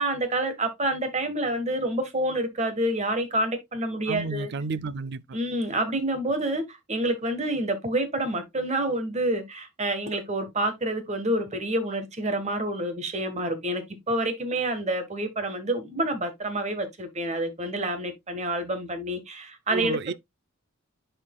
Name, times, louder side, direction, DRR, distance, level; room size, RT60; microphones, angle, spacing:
voice 1, 0.0-4.5 5.3-20.1, right 1 dB, 35° right, 1.5 m, -28 dB
voice 2, 4.1-5.4 19.7-20.1, right 4 dB, 55° right, 0.5 m, -31 dB
11.0 x 4.4 x 2.3 m
head